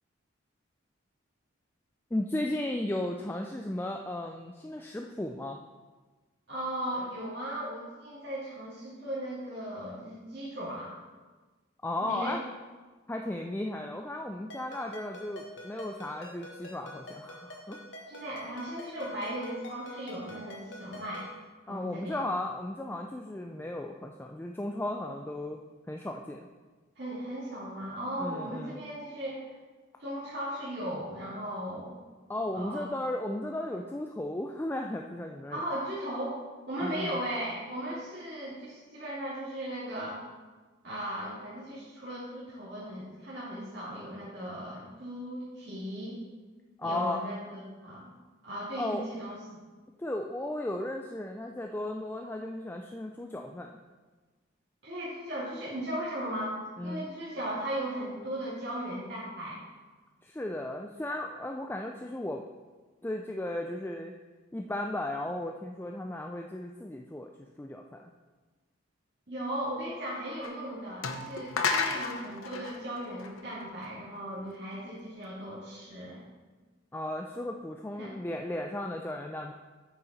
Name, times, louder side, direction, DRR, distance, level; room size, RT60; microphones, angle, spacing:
voice 1, 2.1-5.6 11.8-12.4 13.1-17.8 21.7-25.6 25.9-26.4 28.2-28.8 32.3-35.6 36.8-37.2 46.8-47.2 48.8-49.0 50.0-53.8 56.8-57.1 60.2-62.4 63.0-64.1 64.5-68.1 76.9-79.5, left 1 dB, 10° left, 2 dB, 0.3 m, -35 dB
voice 2, 6.5-10.9 12.0-12.4 18.1-21.2 21.7-22.2 27.0-29.5 30.0-32.0 32.5-32.8 35.5-36.4 36.7-40.2 40.8-46.2 46.8-48.2 48.4-49.6 54.8-56.6 56.8-59.6 69.3-76.2 78.0-78.1, right 1 dB, 55° right, -9 dB, 2.3 m, -37 dB
Ringtone, 14.5-21.4, left 1 dB, 65° left, 1.4 m, -47 dB
sound 1, 70.4-70.5 71.0-73.8, left 4 dB, 90° left, 0.7 m, -32 dB
8.8 x 6.9 x 4.1 m, 1.3 s
head